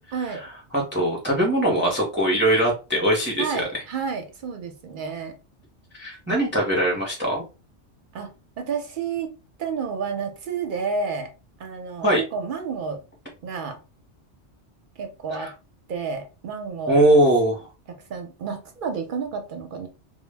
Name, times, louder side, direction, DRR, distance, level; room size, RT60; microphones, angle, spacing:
voice 1, 0.1-0.4 3.4-5.3 8.1-11.3 11.6-13.0 13.4-13.8 15.0-15.5 15.9-17.2 17.9-19.9, right 5 dB, 55° right, 5 dB, 0.6 m, -30 dB
voice 2, 0.7-3.6 6.0-7.4 12.0-12.2 15.3-15.5 16.9-17.7, right 1 dB, 15° right, -1 dB, 0.5 m, -21 dB
2.1 x 2.0 x 3.2 m, 0.30 s
omnidirectional pair, 1.2 m